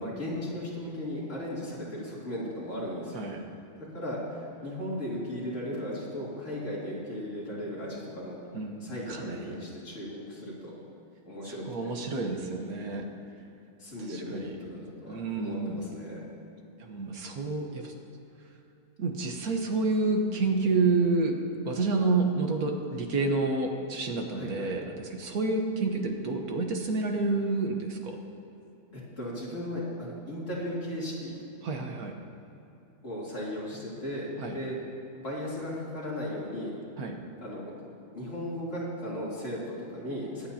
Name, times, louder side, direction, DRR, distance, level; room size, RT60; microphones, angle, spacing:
voice 1, 0.0-3.2 3.9-8.4 8.8-10.7 11.2-11.9 13.8-16.2 24.3-24.7 28.9-31.3 33.0-34.8 35.2-36.7 37.4-37.7 38.1-40.5, left 1 dB, 55° left, -7 dB, 3.4 m, -36 dB
voice 2, 8.5-9.6 11.7-13.1 14.1-14.5 15.1-15.8 16.8-17.9 19.0-21.3 21.7-24.8 25.1-28.2 31.6-32.1 34.4-34.6 37.0-37.1, right 3 dB, 75° right, 3 dB, 1.7 m, -29 dB
23.5 x 8.8 x 2.8 m, 2.9 s
omnidirectional pair, 1.6 m